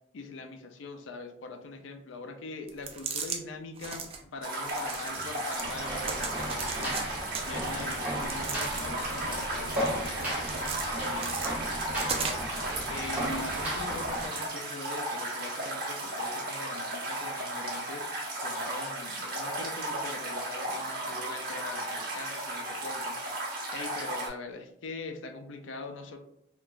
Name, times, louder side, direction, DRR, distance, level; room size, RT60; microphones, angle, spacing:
voice 1, 0.1-23.4 23.7-26.2, left 3 dB, 80° left, 6 dB, 0.4 m, -43 dB
sound 1, 2.7-3.4 3.8-4.2 4.6-5.7 6.0-7.0 7.3-9.1 9.5-10.9 11.2-12.6, right 5 dB, 30° right, 0.4 m, -37 dB
sound 2, 4.4-24.3, right 1 dB, 50° right, 1.0 m, -35 dB
sound 3, 5.6-14.3, right 1 dB, 10° right, 0.8 m, -36 dB
3.6 x 2.3 x 2.4 m, 0.76 s
head